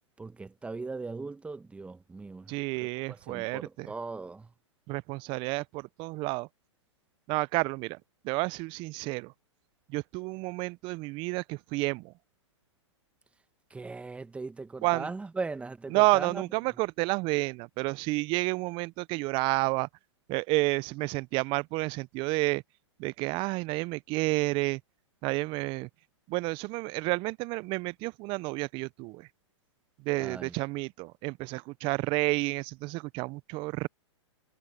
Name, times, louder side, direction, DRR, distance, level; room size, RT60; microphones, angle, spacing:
voice 1, 0.2-4.5 13.7-16.4 30.2-30.5, right 3 dB, 10° right, 1.2 m, -39 dB
voice 2, 2.5-3.9 4.9-6.5 7.3-8.0 8.2-9.3 9.9-12.1 14.8-15.1 15.9-19.9 20.3-22.6 23.0-24.8 25.2-25.9 26.3-29.3 30.0-33.9, right 24 dB, 35° right, 0.7 m, -30 dB
hypercardioid pair, 120°, 16 cm